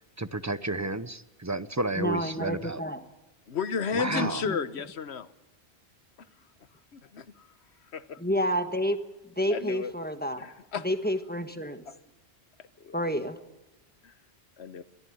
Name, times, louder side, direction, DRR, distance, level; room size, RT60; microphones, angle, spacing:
voice 1, 0.2-2.8 3.9-4.4, right 2 dB, 20° right, 14 dB, 0.5 m, -31 dB
voice 2, 1.9-3.0 4.1-4.6 8.2-9.0 9.4-10.5 10.8-11.8 12.9-13.4, equal, 10° left, 8 dB, 1.4 m, -29 dB
voice 3, 3.5-5.3 6.2-6.3 6.9-7.6 7.8-8.2 9.5-9.9 10.4-10.9 11.9-12.0 12.8-13.0 14.0-14.1 14.6-14.8, left 6 dB, 75° left, 13 dB, 1.3 m, -33 dB
22.5 x 14.5 x 9.3 m, 0.99 s
omnidirectional pair, 1.1 m